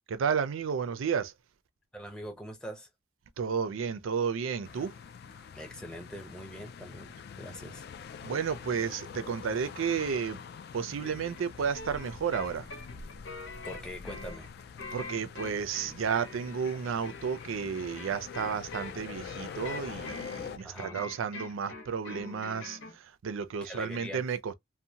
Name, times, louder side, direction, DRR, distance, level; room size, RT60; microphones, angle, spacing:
voice 1, 0.1-1.3 3.4-5.0 8.2-10.4 10.7-12.7 14.9-24.5, right 6 dB, 90° right, 0.4 m, -32 dB
voice 2, 1.9-2.9 5.5-7.9 13.6-14.5 20.6-21.0 23.6-24.2, equal, 5° left, 0.7 m, -43 dB
sound 1, 4.6-20.6, left 6 dB, 55° left, 0.3 m, -45 dB
sound 2, 11.0-23.0, left 3 dB, 80° left, 0.9 m, -44 dB
2.7 x 2.1 x 2.7 m
head